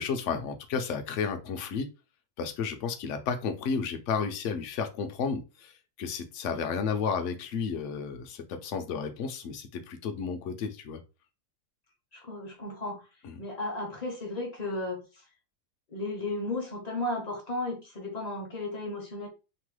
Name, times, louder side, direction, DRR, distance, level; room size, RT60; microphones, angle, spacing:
voice 1, 0.0-1.9 2.4-5.7 6.0-11.0 13.2-13.4, left 5 dB, 65° left, 0.8 m, -32 dB
voice 2, 12.1-13.0 13.4-15.0 15.9-19.3, left 2 dB, 40° left, 0.6 m, -34 dB
3.0 x 2.1 x 3.1 m
omnidirectional pair, 1.5 m